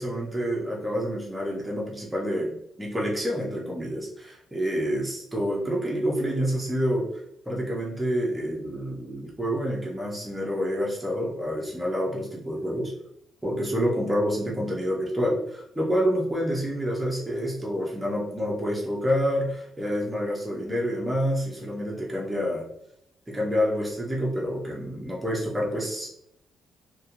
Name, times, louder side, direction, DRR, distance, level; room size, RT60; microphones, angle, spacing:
voice 1, 0.0-7.1 7.5-12.9 13.4-22.6 23.3-26.1, equal, 5° right, -3 dB, 0.4 m, -28 dB
2.3 x 2.1 x 2.8 m, 0.75 s
cardioid pair, 155°, 0 cm